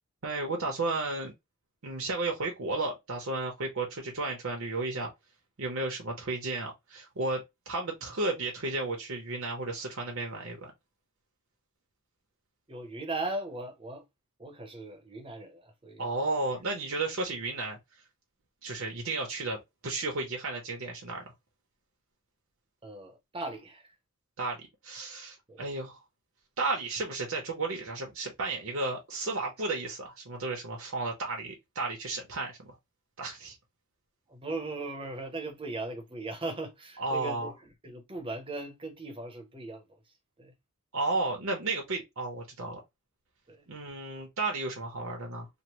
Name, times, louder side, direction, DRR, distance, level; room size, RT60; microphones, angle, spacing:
voice 1, 0.2-1.3 1.8-5.1 5.6-10.7 16.0-17.8 18.6-21.2 24.4-26.0 26.6-32.7 33.2-33.6 37.0-37.5 40.9-42.8 43.7-45.5, right 2 dB, 65° right, 0.7 m, -33 dB
voice 2, 12.7-14.0 14.4-16.1 16.5-16.6 22.8-23.9 25.5-25.7 34.3-40.0 40.4-40.5 43.5-43.6, right 2 dB, 25° right, 0.7 m, -38 dB
3.0 x 2.0 x 2.9 m
head